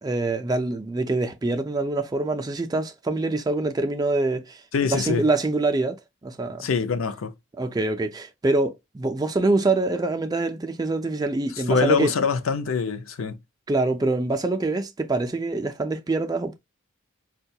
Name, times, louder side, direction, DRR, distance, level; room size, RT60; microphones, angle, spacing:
voice 1, 0.0-4.6 4.9-6.7 7.6-12.1 13.7-16.6, right 2 dB, 20° right, 0.3 m, -25 dB
voice 2, 4.7-5.2 6.6-7.3 11.7-13.4, left 5 dB, 80° left, 0.5 m, -24 dB
4.4 x 2.2 x 2.7 m
head